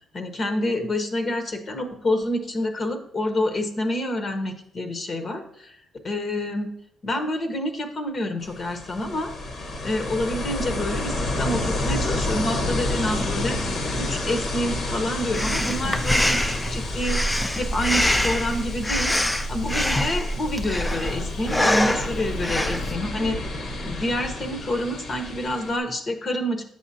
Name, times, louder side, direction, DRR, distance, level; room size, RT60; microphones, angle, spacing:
voice 1, 0.1-5.8 6.0-6.7 7.0-9.3 9.6-13.6 14.0-23.4 23.8-26.6, left 1 dB, 40° left, 5 dB, 0.9 m, -28 dB
Ocean, 8.4-25.8, left 2 dB, 65° left, 1.1 m, -30 dB
Breathing, 15.3-23.0, left 1 dB, 10° left, 0.5 m, -25 dB
7.8 x 6.3 x 2.7 m, 0.71 s
cardioid pair, 90°, 0 cm